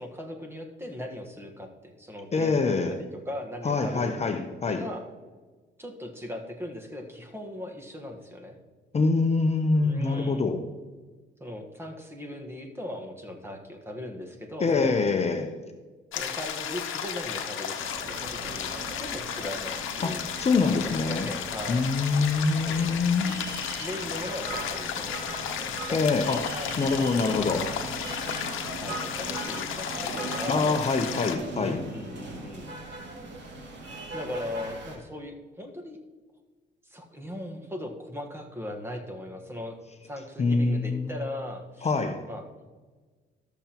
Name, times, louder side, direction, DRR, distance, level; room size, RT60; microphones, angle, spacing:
voice 1, 0.0-4.3 4.7-5.0 5.8-8.6 9.8-10.4 11.4-15.0 16.1-20.2 21.0-21.9 22.7-23.4 23.8-26.7 27.3-27.8 28.8-31.2 31.5-32.7 34.1-36.0 36.9-39.8 40.0-41.9 42.3-42.4, left 1 dB, 10° right, 3 dB, 1.4 m, -39 dB
voice 2, 2.3-2.9 3.6-4.8 8.9-10.6 14.6-15.5 20.0-21.3 21.7-23.3 25.9-26.4 26.8-27.6 30.5-31.8 40.4-41.1 41.8-42.2, left 4 dB, 35° left, 6 dB, 0.7 m, -25 dB
sound 1, 16.1-31.4, left 8 dB, 80° left, 0.9 m, -34 dB
sound 2, 17.8-35.0, right 3 dB, 65° right, 2.5 m, -39 dB
13.5 x 6.9 x 3.0 m, 1.3 s
cardioid pair, 90°, 20 cm